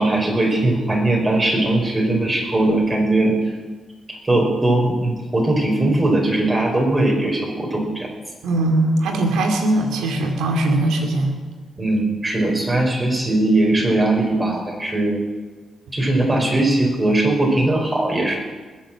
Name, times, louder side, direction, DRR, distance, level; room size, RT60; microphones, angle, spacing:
voice 1, 0.0-3.4 4.1-8.1 11.8-15.2 15.9-18.4, right 2 dB, 25° right, 0 dB, 5.2 m, -19 dB
voice 2, 8.4-11.3 15.9-16.1, right 2 dB, 90° right, 3 dB, 2.5 m, -20 dB
20.0 x 7.9 x 7.5 m, 1.3 s
cardioid pair, 75°, 0 cm